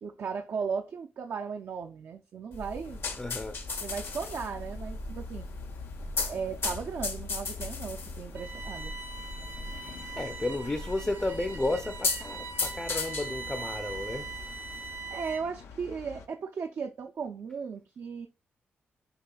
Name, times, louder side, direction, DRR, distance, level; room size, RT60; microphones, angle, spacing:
voice 1, 0.0-3.0 3.8-5.5 6.3-8.9 15.1-18.3, right 6 dB, 65° right, 0.4 m, -36 dB
sound 1, 2.5-14.9, left 3 dB, 60° left, 0.8 m, -37 dB
sound 2, 2.8-16.3, left 5 dB, 85° left, 0.5 m, -49 dB
voice 2, 3.2-3.6 10.2-14.3, left 2 dB, 20° left, 0.5 m, -32 dB
Bowed string instrument, 8.3-15.6, right 4 dB, 90° right, 1.0 m, -41 dB
6.6 x 2.6 x 2.2 m
cardioid pair, 55°, 5 cm